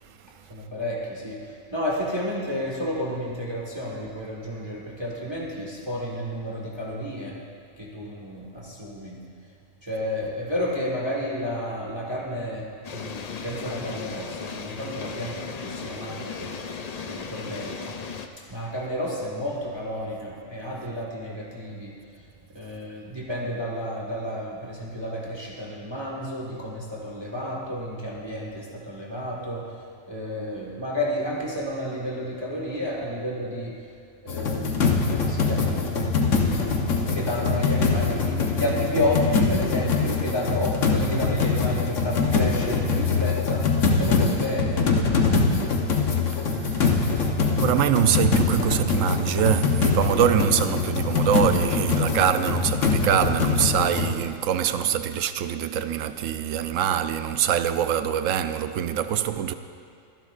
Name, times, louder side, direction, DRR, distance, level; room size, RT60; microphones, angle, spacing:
voice 1, 0.2-7.4 7.8-9.2 9.8-16.6 17.0-18.0 18.4-33.9 34.2-36.8 37.1-44.8, left 1 dB, 20° right, 1.6 m, -31 dB
sound 1, 12.8-18.3, left 5 dB, 50° left, 0.4 m, -36 dB
sound 2, 34.3-54.1, left 4 dB, 70° left, 1.4 m, -23 dB
voice 2, 46.1-59.5, right 9 dB, 75° right, 1.0 m, -24 dB
23.5 x 11.0 x 2.5 m
omnidirectional pair, 1.4 m